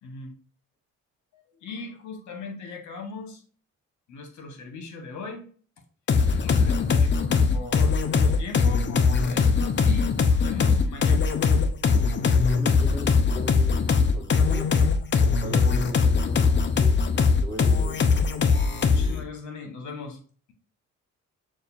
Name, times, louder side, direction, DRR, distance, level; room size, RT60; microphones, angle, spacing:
voice 1, 0.0-0.3 1.3-3.4 4.1-5.5 6.4-11.3 18.8-20.2, left 4 dB, 70° left, 5 dB, 1.3 m, -39 dB
sound 1, 6.1-19.2, left 5 dB, 40° left, 0.6 m, -21 dB
voice 2, 12.4-14.7 15.3-18.2, left 1 dB, 15° left, -1 dB, 1.7 m, -39 dB
6.5 x 2.5 x 2.6 m, 0.42 s
cardioid pair, 90°, 30 cm